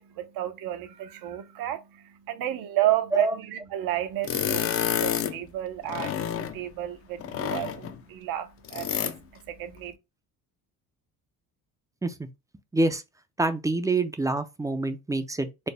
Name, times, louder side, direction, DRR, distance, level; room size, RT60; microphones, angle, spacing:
voice 1, 0.0-9.1 9.5-9.9, right 13 dB, 70° right, 0.8 m, -31 dB
sound 1, 4.2-5.4 5.8-6.6 7.2-8.0 8.6-9.2, left 9 dB, 40° left, 0.5 m, -29 dB
voice 2, 12.7-13.0 13.4-15.7, right 2 dB, 10° right, 0.4 m, -26 dB
4.3 x 2.1 x 3.3 m
cardioid pair, 110°, 37 cm